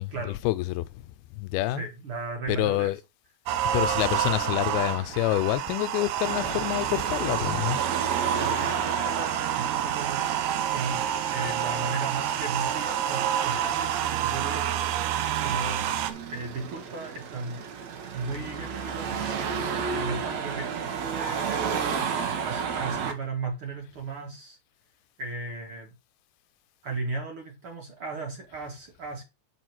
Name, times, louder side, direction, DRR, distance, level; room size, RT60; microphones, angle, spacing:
voice 1, 0.0-1.9 2.5-3.0 3.7-7.8 15.2-15.3, left 16 dB, 90° left, 2.5 m, -27 dB
voice 2, 1.7-2.9 8.4-10.3 10.7-11.0 11.3-14.8 15.4-15.9 16.3-17.7 18.1-19.5 19.9-24.6 25.2-25.9 26.8-29.2, right 3 dB, 45° right, 2.0 m, -36 dB
sound 1, 3.5-16.1, right 10 dB, 80° right, 1.8 m, -28 dB
Car passing by / Traffic noise roadway noise / Engine, 6.2-23.1, right 6 dB, 65° right, 1.8 m, -33 dB
6.8 x 4.6 x 6.0 m
omnidirectional pair, 4.4 m